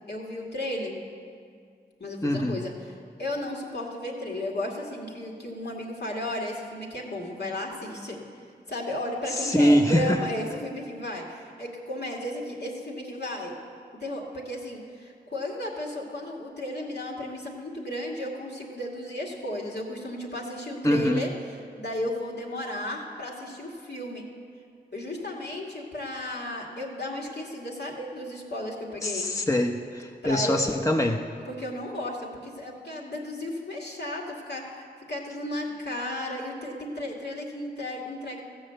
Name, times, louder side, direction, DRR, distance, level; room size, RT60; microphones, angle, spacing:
voice 1, 0.1-1.0 2.0-8.2 8.7-13.5 14.0-24.2 24.9-29.4 30.2-30.7 31.4-38.4, left 1 dB, 70° left, -2 dB, 2.2 m, -34 dB
voice 2, 2.2-2.6 9.4-10.2 20.8-21.2 29.0-31.2, left 1 dB, 15° left, 3 dB, 0.8 m, -23 dB
15.0 x 6.4 x 7.9 m, 2.2 s
cardioid pair, 40°, 18 cm